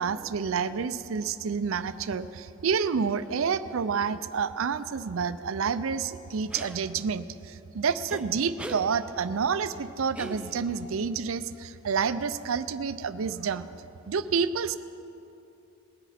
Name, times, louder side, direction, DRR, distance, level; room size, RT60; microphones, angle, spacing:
voice 1, 0.0-13.7 14.1-14.8, right 6 dB, 85° right, 13 dB, 0.5 m, -29 dB
sound 1, 6.5-6.8 8.1-8.2 8.6-8.8 10.1-10.8, right 1 dB, 5° right, 0.7 m, -39 dB
19.5 x 9.9 x 4.3 m, 2.8 s
head